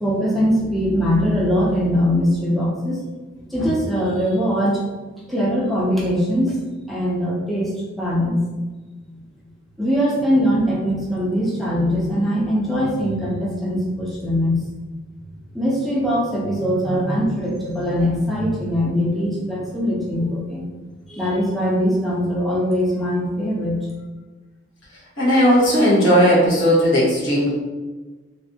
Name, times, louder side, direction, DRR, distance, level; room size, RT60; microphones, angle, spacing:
voice 1, 0.0-3.0 3.5-4.8 5.3-6.6 6.9-8.4 9.1-9.2 9.8-14.7 15.5-20.7 21.1-23.9, equal, ahead, -6 dB, 0.5 m, -21 dB
voice 2, 25.2-27.5, equal, 75° left, -8 dB, 1.3 m, -16 dB
3.2 x 2.6 x 2.7 m, 1.3 s
head